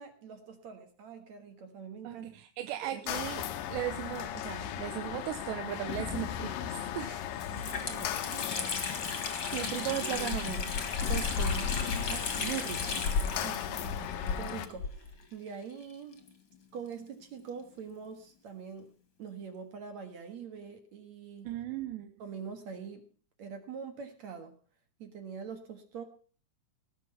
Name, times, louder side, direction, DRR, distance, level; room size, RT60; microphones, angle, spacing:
voice 1, 0.0-2.3 2.8-3.0 7.5-8.8 13.3-16.2 16.7-18.9 19.2-21.5 22.2-23.1 23.4-24.5 25.0-26.0, right 6 dB, 55° right, 7 dB, 2.2 m, -44 dB
voice 2, 2.0-3.4 3.7-7.2 9.1-10.7 11.1-11.7 12.1-13.4 21.4-22.1, right 14 dB, 85° right, 8 dB, 3.0 m, -38 dB
sound 1, 3.1-14.7, left 10 dB, 70° left, 2.2 m, -37 dB
Water tap faucet, 6.7-6.8 7.2-14.9 15.2-15.3 16.1-17.7, left 4 dB, 35° left, 2.4 m, -37 dB
sound 2, 10.1-14.5 14.8-15.1, left 5 dB, 50° left, 2.2 m, -34 dB
18.5 x 8.3 x 5.6 m, 0.41 s
omnidirectional pair, 4.9 m